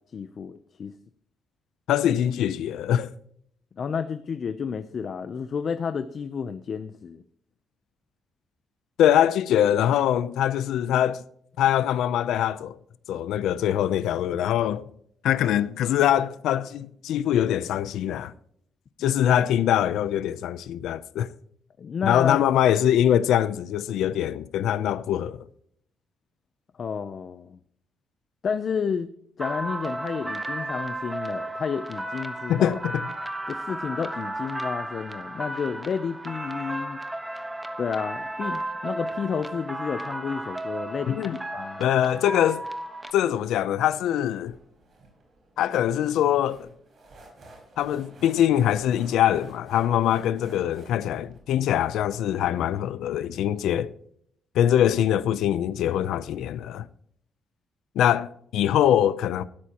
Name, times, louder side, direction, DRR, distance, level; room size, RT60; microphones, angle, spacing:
voice 1, 0.1-0.9 3.8-7.2 21.8-22.4 26.8-27.6 28.4-29.1 29.4-32.8 33.5-37.0 37.8-41.8, left 6 dB, 45° left, 0.6 m, -31 dB
voice 2, 1.9-3.1 9.0-11.2 11.6-12.8 13.1-14.9 15.2-18.3 19.0-21.3 22.0-25.4 32.5-33.0 41.1-41.3 41.8-42.6 43.1-44.5 45.6-46.7 47.8-53.9 54.5-56.8 58.0-59.4, left 11 dB, 90° left, 0.6 m, -23 dB
sound 1, 29.4-43.1, right 1 dB, 10° right, 1.4 m, -34 dB
sound 2, 44.4-51.4, right 2 dB, 45° right, 5.1 m, -52 dB
16.0 x 13.0 x 3.0 m
cardioid pair, 130°, 0 cm